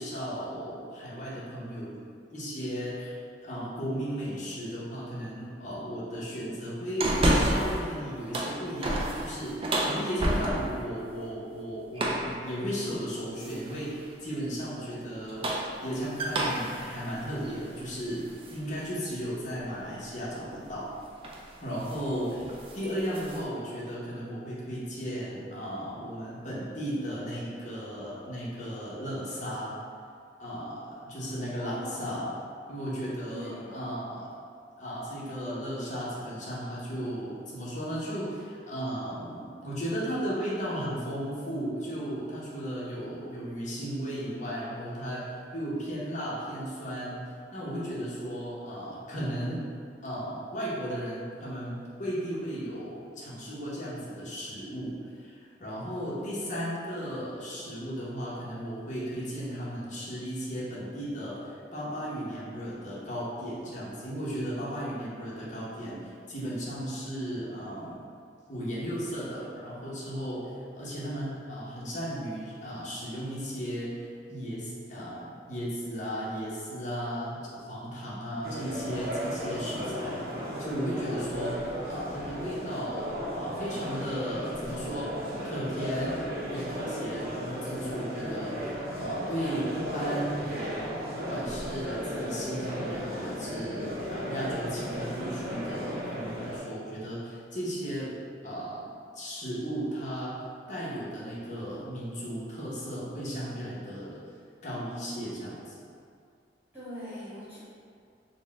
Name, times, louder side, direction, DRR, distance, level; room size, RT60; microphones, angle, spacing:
voice 1, 0.0-1.9 2.3-15.4 15.8-20.9 21.6-22.4 22.7-29.8 30.4-32.3 32.7-34.3 34.8-47.3 47.5-49.7 50.0-68.0 68.5-73.9 74.3-80.2 80.6-85.1 85.4-86.2 86.5-90.5 91.2-98.1 98.4-98.8 99.1-100.4 100.7-104.2 104.6-105.9, equal, 45° left, -7 dB, 0.9 m, -35 dB
sound 1, 7.0-7.8 8.2-10.9 11.9-12.4 13.4-13.8 15.1-18.6 19.0-19.1 20.7-20.9 21.2-21.5 21.8-22.0 22.4-23.4, right 1 dB, 30° right, 0.4 m, -30 dB
voice 2, 31.6-32.1 33.3-33.7 78.0-78.2 106.7-107.6, equal, 10° right, -12 dB, 1.3 m, -42 dB
sound 2, 78.4-96.6, equal, 55° right, 0.7 m, -35 dB
4.1 x 2.2 x 3.5 m, 2.3 s
head